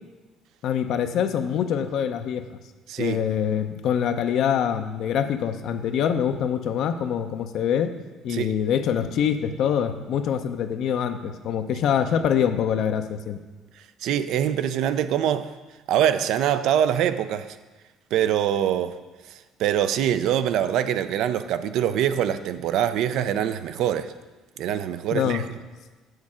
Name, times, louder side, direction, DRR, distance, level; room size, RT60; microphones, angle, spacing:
voice 1, 0.6-2.5 3.0-7.9 8.2-13.4 25.1-25.4, left 8 dB, 65° left, 0.6 m, -24 dB
voice 2, 14.0-15.6 15.9-17.5 18.1-19.0 19.6-24.1 24.6-25.4, right 10 dB, 75° right, 0.4 m, -24 dB
7.2 x 6.4 x 4.9 m
cardioid pair, 95°, 0 cm